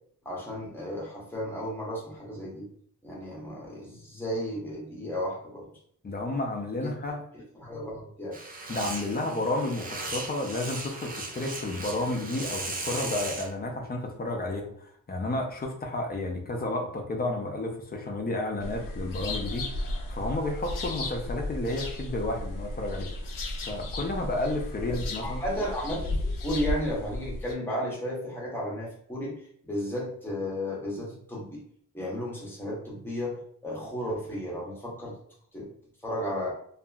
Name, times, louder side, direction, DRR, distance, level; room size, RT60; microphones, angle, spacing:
voice 1, 0.2-2.7 3.0-5.7 6.8-6.9 7.3-8.4 25.2-29.4 29.6-31.6 31.9-33.4 33.6-35.1 35.5-35.7 36.0-36.5, equal, 5° left, -5 dB, 0.8 m, -33 dB
voice 2, 6.0-7.2 8.7-23.1 23.6-25.4, left 2 dB, 30° left, 1 dB, 0.5 m, -31 dB
sound 1, 8.3-13.5, right 2 dB, 30° right, 0.3 m, -37 dB
sound 2, 18.6-27.5, left 2 dB, 80° left, 0.5 m, -34 dB
2.7 x 2.4 x 2.3 m, 0.64 s
wide cardioid pair, 160°, 33 cm